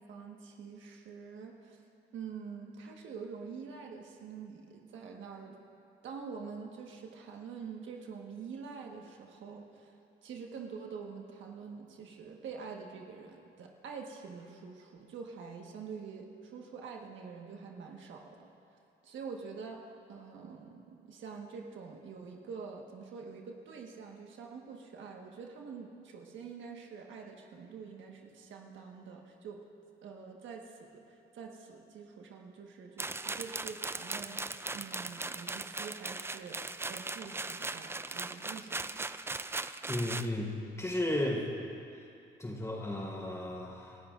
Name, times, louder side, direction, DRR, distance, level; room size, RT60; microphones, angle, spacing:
voice 1, 0.0-1.8 2.1-5.6 6.0-9.9 10.2-18.5 19.0-29.6 30.0-38.9, right 5 dB, 75° right, 1 dB, 1.5 m, -46 dB
sound 1, 33.0-40.3, right 3 dB, 10° right, 0.4 m, -39 dB
voice 2, 39.9-40.5 40.8-41.4 42.4-44.0, left 1 dB, 15° left, -1 dB, 4.4 m, -34 dB
29.0 x 13.0 x 2.6 m, 2.6 s
cardioid pair, 90°, 20 cm